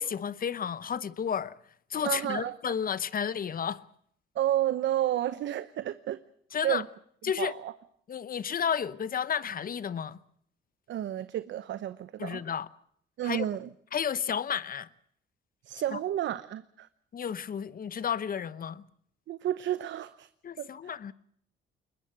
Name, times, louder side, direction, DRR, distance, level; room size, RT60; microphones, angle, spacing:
voice 1, 0.0-1.6 1.9-3.8 6.5-6.8 7.2-7.5 8.1-10.2 12.2-12.7 13.2-13.5 13.9-14.9 15.9-16.0 17.1-18.8 20.4-21.1, left 7 dB, 45° left, 1.0 m, -32 dB
voice 2, 2.0-2.6 4.3-6.2 6.6-6.9 7.4-7.7 10.9-12.4 13.2-13.7 15.7-16.9 19.3-20.3 20.6-20.7, right 12 dB, 70° right, 0.8 m, -31 dB
21.5 x 21.0 x 7.6 m
cardioid pair, 90°, 20 cm